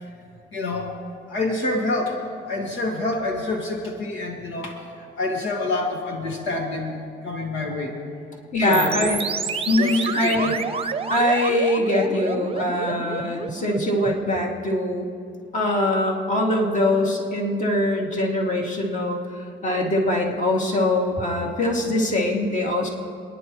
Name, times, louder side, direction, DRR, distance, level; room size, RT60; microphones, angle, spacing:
voice 1, 0.5-1.0 1.3-2.2 2.5-4.9 5.2-7.9 8.6-9.2 9.8-10.5, left 2 dB, 75° left, 0 dB, 1.9 m, -27 dB
voice 2, 8.5-9.2 9.7-10.6 11.1-15.1 15.5-19.2 19.6-22.9, left 1 dB, 40° left, -1 dB, 2.4 m, -22 dB
sound 1, 8.7-14.2, right 5 dB, 30° right, 0.7 m, -29 dB
27.5 x 10.5 x 3.1 m, 2.4 s
cardioid pair, 90°, 20 cm